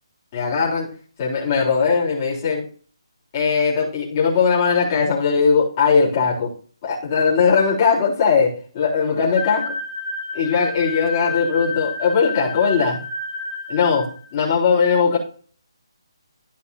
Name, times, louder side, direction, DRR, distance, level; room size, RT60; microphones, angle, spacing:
voice 1, 0.3-0.9 1.2-2.7 3.3-6.5 6.8-9.7 10.3-13.0 13.7-15.2, left 5 dB, 30° left, -5 dB, 3.7 m, -19 dB
sound 1, 9.4-14.2, left 4 dB, 80° left, 2.7 m, -30 dB
13.5 x 5.4 x 2.8 m, 0.42 s
figure-of-eight pair, 155°, 3 cm